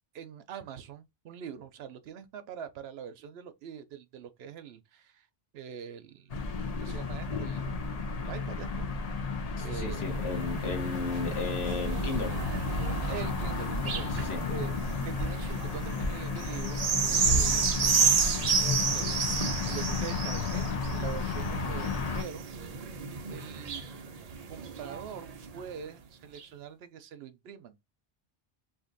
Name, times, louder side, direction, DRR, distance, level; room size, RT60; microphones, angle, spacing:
voice 1, 0.1-5.3 5.5-7.7 8.2-8.8 9.6-10.5 13.1-14.1 14.5-14.8 15.0-18.2 18.5-22.4 23.3-23.8 24.5-25.3 25.5-27.8, right 8 dB, 75° right, 0.8 m, -44 dB
sound 1, 6.3-22.2, left 3 dB, 45° left, 0.6 m, -32 dB
voice 2, 9.6-12.3 14.1-14.4, left 3 dB, 80° left, 1.1 m, -35 dB
sound 2, 9.9-25.7 26.4-26.5, right 6 dB, 50° right, 0.5 m, -32 dB
2.6 x 2.5 x 3.8 m
omnidirectional pair, 1.1 m